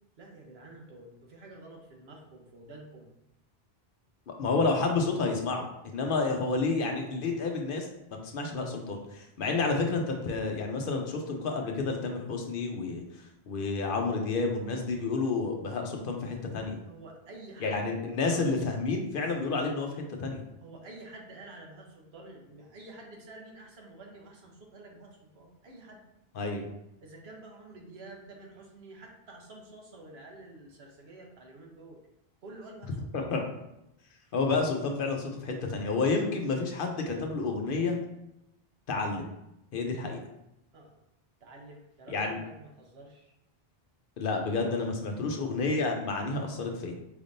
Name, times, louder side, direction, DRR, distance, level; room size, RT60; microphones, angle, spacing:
voice 1, 0.2-3.1 16.9-18.0 18.2-18.5 20.6-26.0 27.0-32.0 32.4-33.3 40.7-40.9 41.4-43.3, right 2 dB, 85° right, 0 dB, 1.1 m, -49 dB
voice 2, 4.3-7.9 8.3-16.8 17.6-20.4 26.3-26.7 33.1-33.4 34.3-38.0 38.9-39.3 39.7-40.2 42.1-42.4 44.2-46.9, left 3 dB, 65° left, 3 dB, 0.8 m, -30 dB
4.9 x 3.5 x 2.6 m, 0.86 s
omnidirectional pair, 1.0 m